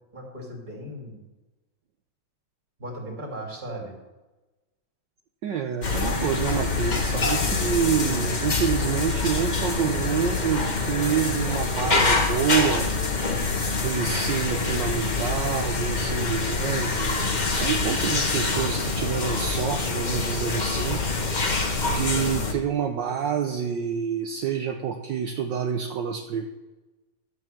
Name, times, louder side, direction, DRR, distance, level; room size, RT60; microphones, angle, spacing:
voice 1, 0.1-1.2 2.8-3.9, right 1 dB, 20° right, -1 dB, 2.8 m, -37 dB
voice 2, 5.4-12.9 13.8-21.0 21.8-26.5, right 8 dB, 70° right, 4 dB, 1.4 m, -27 dB
sound 1, 5.8-22.5, left 3 dB, 30° left, 0.8 m, -25 dB
12.0 x 6.5 x 7.6 m, 1.1 s
omnidirectional pair, 2.2 m